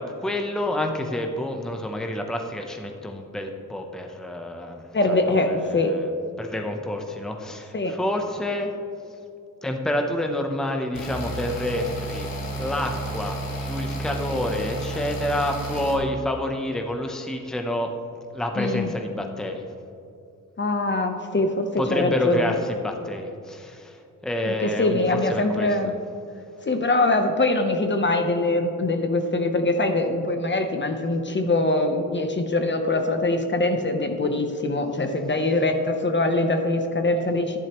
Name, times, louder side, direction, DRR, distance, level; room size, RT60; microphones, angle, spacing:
voice 1, 0.0-6.1 6.4-8.7 9.6-17.9 18.3-19.7 21.8-24.0 24.2-25.9, left 1 dB, ahead, 3 dB, 0.7 m, -28 dB
voice 2, 4.9-5.9 7.7-7.9 18.6-18.9 20.6-22.5 24.5-25.9 26.6-37.6, left 2 dB, 35° left, 5 dB, 0.8 m, -23 dB
sound 1, 10.9-15.9, right 1 dB, 90° left, 1.7 m, -31 dB
12.5 x 10.5 x 3.0 m, 2.6 s
wide cardioid pair, 130°, 33 cm